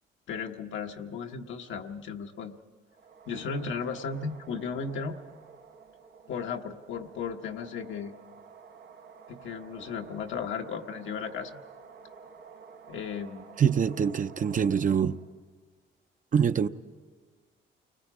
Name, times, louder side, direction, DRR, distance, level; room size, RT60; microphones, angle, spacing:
voice 1, 0.3-2.6 3.3-5.2 6.3-8.1 9.3-11.6 12.9-13.4, left 5 dB, 75° left, 1.2 m, -35 dB
sound 1, 2.9-15.3, right 6 dB, 75° right, 3.3 m, -51 dB
voice 2, 13.6-15.2 16.3-16.7, right 7 dB, 40° right, 0.7 m, -24 dB
29.0 x 21.0 x 4.9 m
cardioid pair, 90°, 20 cm